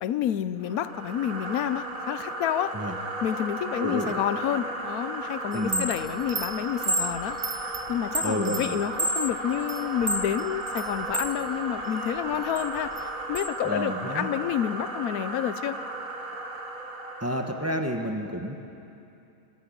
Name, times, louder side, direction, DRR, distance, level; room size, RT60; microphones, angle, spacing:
voice 1, 0.0-2.8 3.2-7.4 7.9-15.8, left 10 dB, 90° left, 14 dB, 1.2 m, -29 dB
sound 1, 0.6-17.6, right 2 dB, 70° right, 2.3 m, -35 dB
voice 2, 3.8-4.2 5.5-5.9 8.2-8.8 13.6-14.3 17.2-18.5, equal, 10° right, 3 dB, 1.3 m, -30 dB
Chime, 5.5-11.4 11.8-13.5, right 1 dB, 35° right, 0.3 m, -31 dB
23.0 x 15.5 x 8.6 m, 2.8 s
omnidirectional pair, 1.5 m